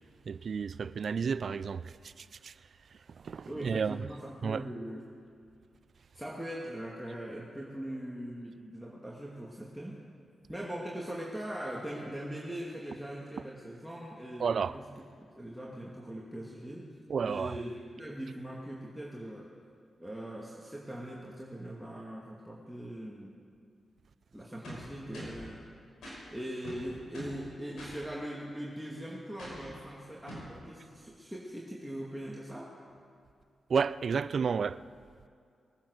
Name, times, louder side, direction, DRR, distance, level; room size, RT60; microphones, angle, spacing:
voice 1, 0.3-1.8 2.2-2.5 3.2-4.0 4.4-4.6 14.4-14.7 17.1-17.6 33.7-34.8, right 6 dB, 65° right, 0.4 m, -31 dB
voice 2, 3.5-5.1 6.1-10.0 10.5-16.9 17.2-19.5 20.0-23.4 24.3-25.6 26.3-32.7, right 1 dB, 5° right, 2.3 m, -41 dB
sound 1, 24.6-25.5 26.0-26.2 26.6-27.4 27.8-28.0 29.4-29.7 30.3-30.5, equal, 80° left, 5.6 m, -44 dB
21.5 x 10.0 x 6.6 m
supercardioid pair, 45°, 0 cm